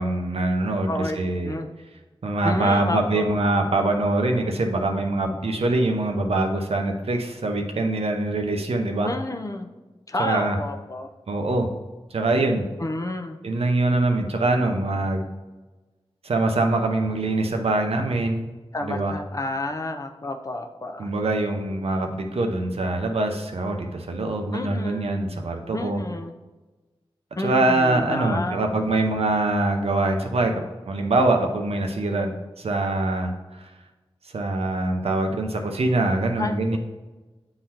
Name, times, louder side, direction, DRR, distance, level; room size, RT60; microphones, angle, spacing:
voice 1, 0.0-1.5 2.2-9.1 10.2-10.6 11.3-11.7 12.1-12.6 13.4-15.2 16.2-18.5 18.8-19.1 21.0-26.0 27.4-30.5 30.9-33.6 34.3-36.8, right 2 dB, 80° right, 4 dB, 0.7 m, -24 dB
voice 2, 0.9-1.7 2.4-3.4 9.0-9.7 10.1-11.1 12.8-13.4 18.7-21.1 24.5-25.2 25.7-26.4 27.4-28.8 36.4-36.8, left 2 dB, 35° left, 5 dB, 0.6 m, -30 dB
8.8 x 3.8 x 2.9 m, 1.2 s
wide cardioid pair, 65°, 10 cm